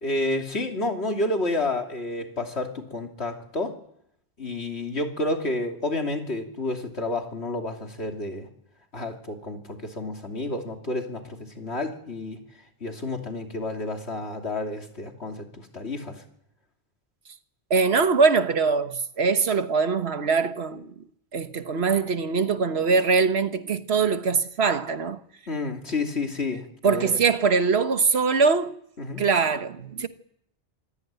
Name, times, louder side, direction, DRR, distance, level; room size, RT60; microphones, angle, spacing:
voice 1, 0.0-3.7 4.4-8.5 8.9-12.4 12.8-16.2 25.5-27.2 29.0-29.2, left 2 dB, 90° left, 3.3 m, -30 dB
voice 2, 17.7-20.9 21.3-25.2 26.8-28.7 29.2-30.1, right 5 dB, 75° right, 1.5 m, -22 dB
26.0 x 16.0 x 9.2 m
omnidirectional pair, 1.1 m